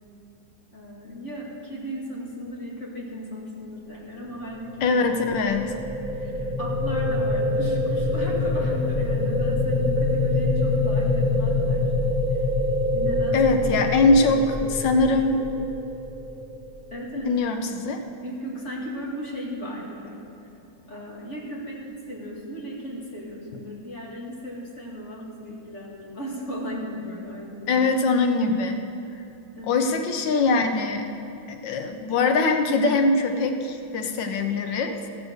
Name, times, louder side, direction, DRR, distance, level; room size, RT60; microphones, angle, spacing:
voice 1, 0.7-5.0 6.1-11.9 12.3-12.4 12.9-13.6 14.0-14.4 15.2-15.3 16.9-17.4 18.2-20.2 20.9-27.8 29.6-29.8, equal, 40° left, -4 dB, 2.6 m, -36 dB
sound 1, 4.7-16.9, left 2 dB, 5° right, 0.4 m, -25 dB
voice 2, 4.8-5.7 13.3-14.4 14.7-15.4 17.2-18.0 27.7-28.8 29.7-31.1 31.5-35.0, left 3 dB, 85° left, 6 dB, 1.6 m, -22 dB
16.0 x 6.9 x 6.4 m, 2.7 s
omnidirectional pair, 1.9 m